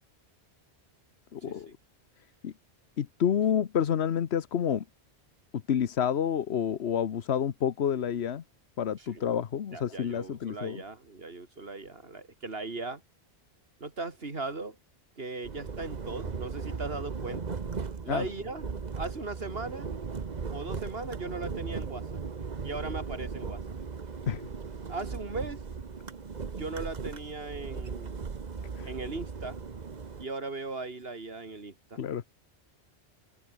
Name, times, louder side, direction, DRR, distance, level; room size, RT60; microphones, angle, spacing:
voice 1, 1.3-1.7 2.4-2.5 3.0-4.8 5.7-8.4 8.8-10.8 18.1-18.2 24.3-24.4 28.8-28.9 32.0-32.2, left 8 dB, 70° left, 1.2 m, -29 dB
voice 2, 9.7-13.0 13.8-14.8 15.2-17.6 18.0-18.6 18.9-19.9 20.5-22.2 22.6-23.8 24.9-25.6 26.6-28.3 28.8-29.6 30.2-32.0, right 3 dB, 60° right, 2.9 m, -38 dB
sound 1, 15.4-30.2, right 5 dB, 40° right, 1.2 m, -37 dB
omnidirectional pair, 1.1 m